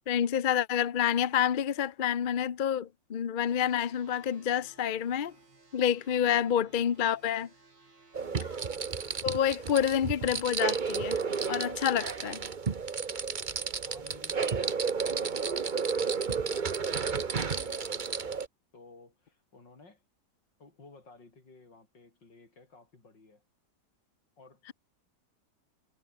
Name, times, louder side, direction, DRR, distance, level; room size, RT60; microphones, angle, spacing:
voice 1, 0.1-5.3 5.7-7.5 9.2-11.2 11.5-12.4, left 9 dB, 45° left, 0.6 m, -28 dB
sound 1, 3.5-9.2, right 3 dB, 85° right, 5.1 m, -60 dB
sound 2, 8.1-18.5, right 5 dB, 30° right, 1.0 m, -32 dB
voice 2, 8.2-8.6 13.8-18.4 18.7-20.0 20.6-23.4 24.4-24.6, left 3 dB, 85° left, 5.5 m, -56 dB
omnidirectional pair, 1.9 m